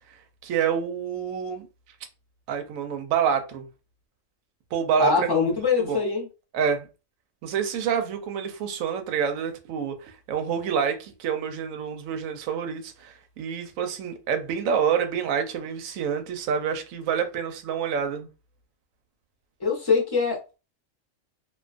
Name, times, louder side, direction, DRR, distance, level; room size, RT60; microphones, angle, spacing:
voice 1, 0.4-1.7 2.5-3.7 4.7-5.5 5.8-6.0 6.5-6.9 7.4-18.3, right 7 dB, 90° right, 1.0 m, -27 dB
voice 2, 5.0-6.3 19.6-20.6, left 5 dB, 25° left, 0.7 m, -23 dB
2.4 x 2.3 x 2.4 m
omnidirectional pair, 1.4 m